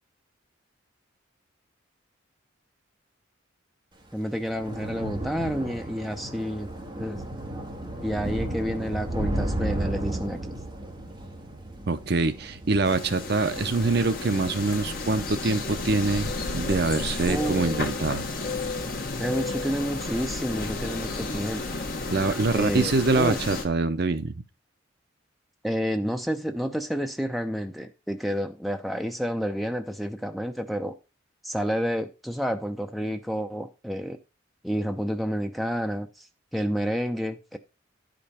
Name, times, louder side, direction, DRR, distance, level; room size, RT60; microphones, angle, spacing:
Thunder / Rain, 4.0-20.6 20.9-21.4 21.7-21.8, right 1 dB, 20° right, 1.5 m, -35 dB
voice 1, 4.1-6.7 7.0-7.2 8.0-10.6 17.3-17.9 19.2-21.6 22.5-23.4 25.6-31.0 31.4-34.2 34.6-36.3 36.5-37.6, equal, ahead, 0.6 m, -29 dB
voice 2, 11.9-18.2 22.1-24.3, right 3 dB, 50° right, 0.6 m, -25 dB
sound 1, 12.8-23.7, left 3 dB, 45° left, 1.2 m, -32 dB
10.5 x 5.2 x 4.2 m
head